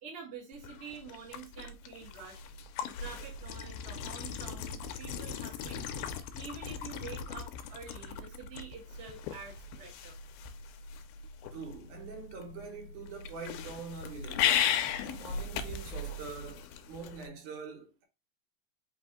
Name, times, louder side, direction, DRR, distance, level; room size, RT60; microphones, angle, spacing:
voice 1, 0.0-2.4 2.8-5.9 6.3-10.2, right 5 dB, 85° right, 0.5 m, -47 dB
sound 1, 0.5-17.3, left 8 dB, 85° left, 2.3 m, -37 dB
voice 2, 11.5-18.0, right 5 dB, 65° right, 2.4 m, -45 dB
5.5 x 2.6 x 3.6 m
omnidirectional pair, 4.1 m